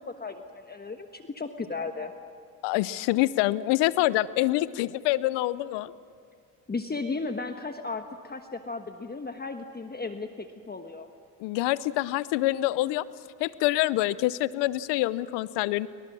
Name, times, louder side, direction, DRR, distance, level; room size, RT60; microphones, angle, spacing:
voice 1, 0.0-2.1 6.7-11.1, left 3 dB, 25° left, 6 dB, 1.3 m, -35 dB
voice 2, 2.6-5.9 11.4-13.0 13.4-15.9, left 17 dB, 85° left, 18 dB, 0.7 m, -26 dB
28.0 x 24.0 x 6.2 m, 2.3 s
supercardioid pair, 70°, 41 cm